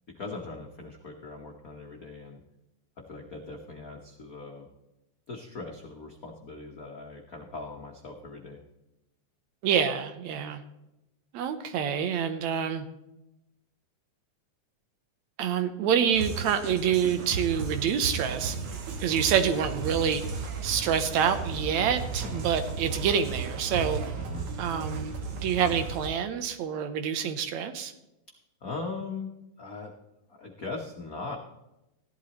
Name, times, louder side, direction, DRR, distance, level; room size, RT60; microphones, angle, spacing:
voice 1, 0.1-2.4 3.1-4.7 5.3-8.6 22.2-22.5 24.2-24.5 28.6-29.3 29.6-29.9 30.3-31.4, left 3 dB, 65° left, 0 dB, 0.8 m, -40 dB
voice 2, 9.6-10.6 11.3-12.9 15.4-18.7 19.0-20.2 20.6-24.0 24.6-25.1 25.4-27.9, right 8 dB, 75° right, 9 dB, 2.0 m, -27 dB
sound 1, 16.1-26.1, right 4 dB, 55° right, 1.9 m, -34 dB
15.0 x 11.5 x 3.1 m, 0.92 s
omnidirectional pair, 3.5 m